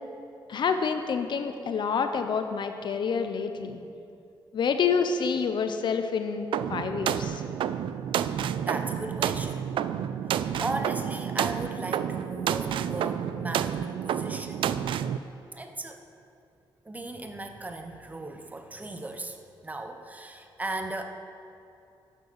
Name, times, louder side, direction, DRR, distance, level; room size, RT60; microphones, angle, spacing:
voice 1, 0.5-3.8 4.5-7.4, left 6 dB, 60° left, 8 dB, 0.8 m, -28 dB
sound 1, 6.5-15.2, right 9 dB, 80° right, 0.4 m, -30 dB
voice 2, 8.6-9.6 10.6-14.8 15.5-16.0 16.8-21.0, right 2 dB, 20° right, 5 dB, 1.0 m, -37 dB
11.0 x 6.7 x 6.7 m, 2.6 s
cardioid pair, 90°, 9 cm